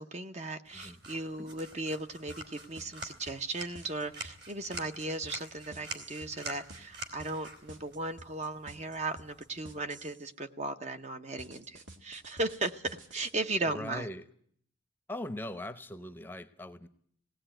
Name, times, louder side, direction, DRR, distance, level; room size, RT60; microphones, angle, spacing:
voice 1, 0.0-14.1, right 2 dB, 35° right, 7 dB, 0.9 m, -36 dB
sound 1, 0.7-9.8, right 2 dB, 60° right, 3.5 m, -47 dB
sound 2, 2.3-10.3 11.4-13.3, right 2 dB, 85° right, 2.0 m, -51 dB
voice 2, 13.7-14.3 15.1-16.9, left 1 dB, 10° left, 10 dB, 0.8 m, -40 dB
18.0 x 18.0 x 9.0 m, 0.64 s
head